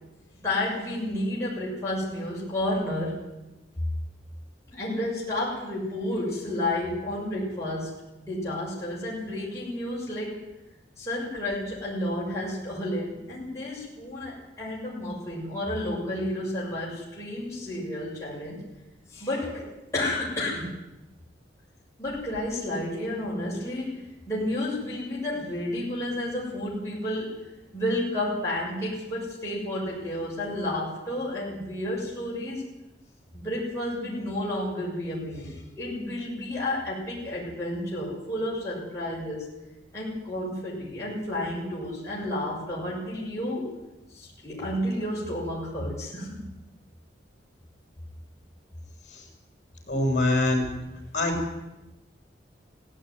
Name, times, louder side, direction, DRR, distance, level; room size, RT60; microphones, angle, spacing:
voice 1, 0.4-3.2 4.7-7.9 8.2-10.4 11.0-18.6 19.1-20.7 22.0-27.4 27.7-32.6 33.3-39.4 39.9-43.7 44.1-46.4, left 1 dB, 15° left, -6 dB, 6.6 m, -31 dB
voice 2, 49.9-50.7 51.1-51.3, left 2 dB, 45° left, 2 dB, 6.9 m, -23 dB
17.0 x 16.5 x 9.7 m, 0.99 s
head